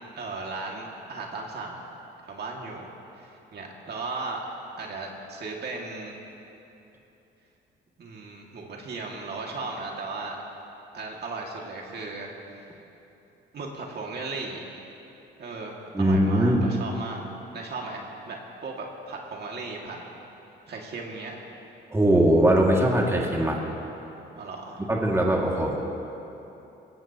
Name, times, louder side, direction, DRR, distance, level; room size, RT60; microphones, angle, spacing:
voice 1, 0.2-1.8 2.2-2.8 3.1-4.4 4.8-6.2 8.0-10.4 10.9-12.5 13.5-14.7 15.4-17.2 17.5-20.0 20.7-21.4 24.3-24.8, right 3 dB, 55° right, -1 dB, 2.2 m, -36 dB
voice 2, 15.9-16.7 21.9-23.6 24.9-25.8, right 1 dB, 15° right, -2 dB, 2.2 m, -21 dB
21.5 x 18.0 x 3.0 m, 3.0 s
cardioid pair, 90°, 20 cm